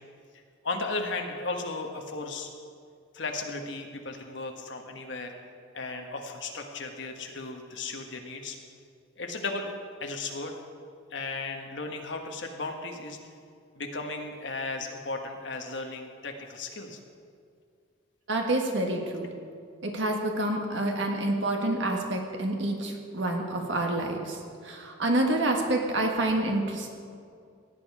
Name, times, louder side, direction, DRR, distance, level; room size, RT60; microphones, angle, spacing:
voice 1, 0.6-2.5 3.1-5.3 5.7-8.6 9.2-10.6 11.1-13.2 13.7-17.0, left 3 dB, 60° left, 3 dB, 1.3 m, -35 dB
voice 2, 18.3-19.3 19.8-26.9, right 1 dB, 60° right, 2 dB, 1.6 m, -28 dB
17.0 x 9.3 x 4.8 m, 2.3 s
head